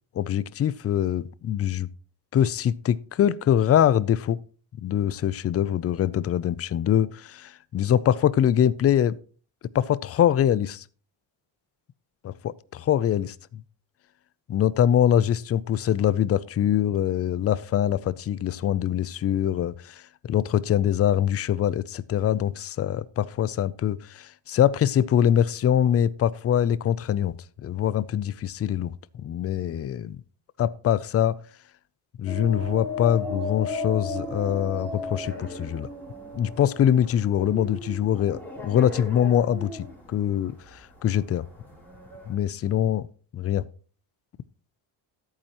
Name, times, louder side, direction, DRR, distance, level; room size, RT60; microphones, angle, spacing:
voice 1, 0.1-1.9 2.3-4.4 4.8-9.2 9.7-10.8 12.2-13.6 14.5-30.2 30.6-31.4 32.2-35.9 36.3-41.5 42.3-43.1 43.3-43.7, left 10 dB, 35° left, 0.4 m, -24 dB
sound 1, 32.3-42.3, left 2 dB, 5° left, 3.2 m, -36 dB
14.0 x 8.6 x 2.9 m
cardioid pair, 130°, 48 cm